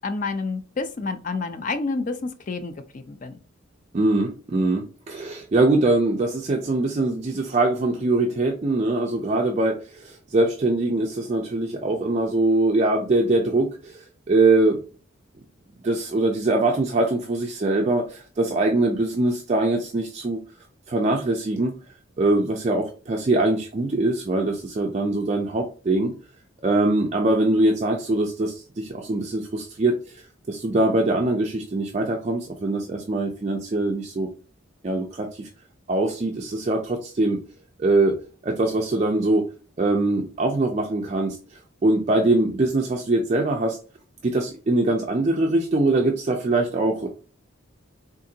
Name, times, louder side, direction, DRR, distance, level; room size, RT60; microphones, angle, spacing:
voice 1, 0.0-3.4, left 3 dB, 40° left, 9 dB, 0.4 m, -29 dB
voice 2, 3.9-14.8 15.8-20.4 20.9-21.7 22.2-26.1 26.6-34.3 34.8-35.5 35.9-37.4 37.8-38.2 38.4-39.4 39.8-43.8 44.2-47.1, right 2 dB, 35° right, 1 dB, 0.3 m, -22 dB
3.7 x 2.5 x 2.7 m, 0.36 s
head